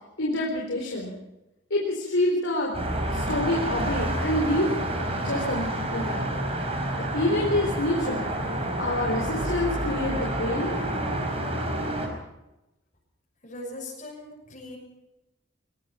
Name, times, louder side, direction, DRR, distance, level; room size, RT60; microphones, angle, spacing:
voice 1, 0.2-1.2 1.7-2.7 3.1-4.7 5.2-6.3 6.9-8.3 8.8-10.7, left 1 dB, 85° left, -2 dB, 4.1 m, -27 dB
sound 1, 2.7-12.1, right 1 dB, 30° right, 4.6 m, -29 dB
voice 2, 13.4-14.8, left 1 dB, 40° left, -2 dB, 6.3 m, -39 dB
21.5 x 21.0 x 5.8 m, 0.94 s
head